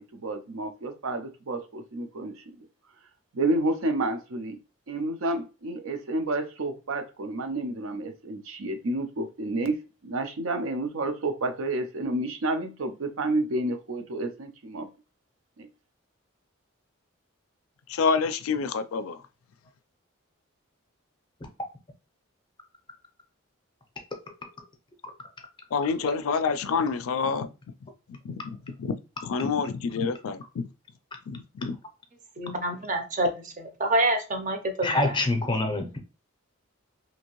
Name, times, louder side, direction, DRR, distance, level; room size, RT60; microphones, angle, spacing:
voice 1, 0.0-2.4 3.3-4.6 4.9-9.8 10.0-14.9 15.6-15.7, right 2 dB, 80° right, 0.6 m, -30 dB
voice 2, 17.9-19.2 25.7-27.5 28.1-30.7 31.3-31.8, left 5 dB, 80° left, 0.4 m, -28 dB
voice 3, 32.4-35.1, right 1 dB, 40° right, 0.6 m, -27 dB
voice 4, 34.8-36.0, left 2 dB, 20° left, 0.5 m, -26 dB
2.8 x 2.6 x 2.9 m
head